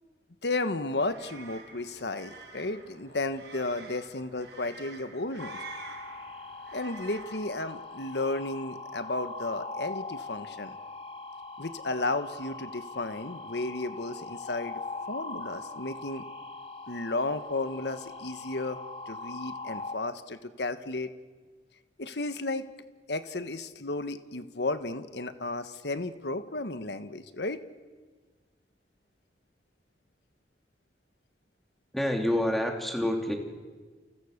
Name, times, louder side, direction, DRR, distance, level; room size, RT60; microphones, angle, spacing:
voice 1, 0.4-5.6 6.7-10.8 11.6-14.8 15.1-16.2 16.9-18.8 19.1-21.1 22.0-22.6 23.1-27.6, left 2 dB, 75° left, 10 dB, 1.4 m, -33 dB
sound 1, 0.8-7.4, right 4 dB, 75° right, 5.7 m, -48 dB
sound 2, 5.4-19.9, left 3 dB, 35° left, 2.5 m, -41 dB
voice 2, 31.9-33.3, left 1 dB, ahead, 2 dB, 3.1 m, -27 dB
29.5 x 29.0 x 6.8 m, 1.4 s
head